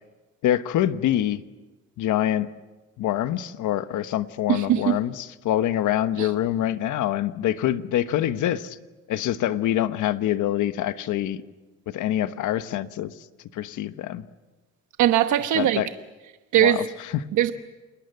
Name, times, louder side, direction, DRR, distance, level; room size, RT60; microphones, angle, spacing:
voice 1, 0.4-1.4 2.0-2.5 3.0-8.8 9.1-11.4 11.9-13.1 13.5-14.3 15.5-15.9 16.6-17.2, left 12 dB, 85° left, 1.2 m, -25 dB
voice 2, 4.5-5.0 6.2-6.3 15.0-15.8 16.5-16.9 17.4-17.5, right 12 dB, 75° right, 1.1 m, -20 dB
29.0 x 20.5 x 7.9 m
cardioid pair, 90°, 30 cm